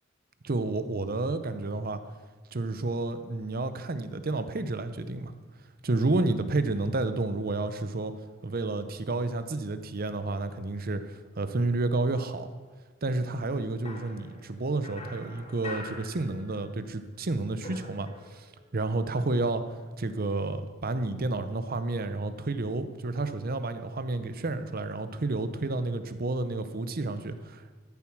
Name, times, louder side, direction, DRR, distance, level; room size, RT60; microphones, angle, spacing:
voice 1, 0.4-2.0 2.5-5.3 5.8-8.1 8.4-12.5 13.0-18.5 18.7-19.6 20.0-27.7, right 2 dB, 45° right, 10 dB, 0.7 m, -30 dB
sound 1, 13.8-16.9 17.1-18.6, left 2 dB, 30° left, 2.1 m, -45 dB
13.5 x 7.2 x 6.1 m, 1.4 s
head